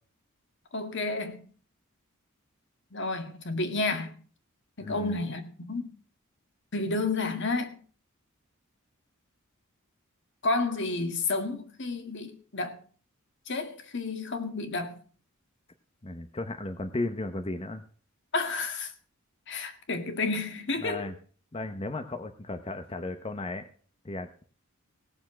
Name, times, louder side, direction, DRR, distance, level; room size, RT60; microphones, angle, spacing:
voice 1, 0.7-1.4 2.9-4.2 4.8-5.9 6.7-7.8 10.4-12.8 13.5-15.0 18.3-18.9 19.5-21.1, left 3 dB, 60° left, 1.8 m, -31 dB
voice 2, 4.8-5.2 16.0-17.8 20.8-21.1 21.5-23.7 24.0-24.4, left 2 dB, 25° left, 0.8 m, -35 dB
17.5 x 7.0 x 6.2 m
head